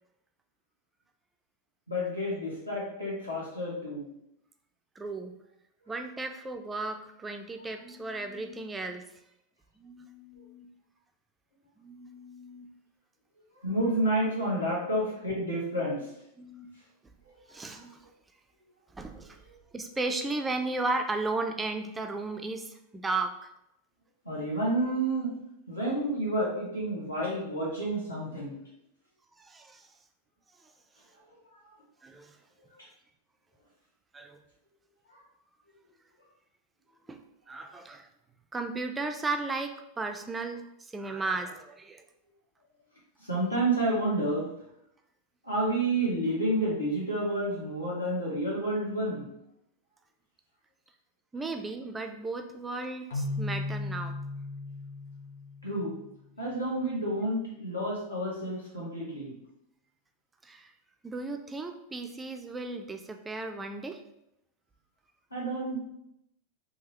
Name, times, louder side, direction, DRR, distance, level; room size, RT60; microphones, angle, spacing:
voice 1, 1.9-4.0 13.6-16.0 17.3-17.6 24.2-25.3 25.7-28.5 35.1-35.2 41.1-41.2 43.2-44.5 45.4-49.3 55.6-55.9 56.4-59.3 65.3-65.8, right 1 dB, 85° left, -6 dB, 1.4 m, -30 dB
voice 2, 5.0-5.4 5.9-9.1 9.8-10.7 11.8-12.7 13.8-13.9 16.4-16.7 17.5-18.1 18.9-19.4 19.7-23.5 29.4-29.9 32.0-32.4 34.1-34.4 37.1-37.2 37.5-38.1 38.5-42.0 51.3-54.2 60.4-60.7 61.0-64.0, right 3 dB, 15° right, 5 dB, 0.3 m, -35 dB
Keyboard (musical), 53.1-56.0, left 2 dB, 55° left, 0.6 m, -36 dB
3.6 x 2.8 x 2.9 m, 0.81 s
figure-of-eight pair, 90°, 0 cm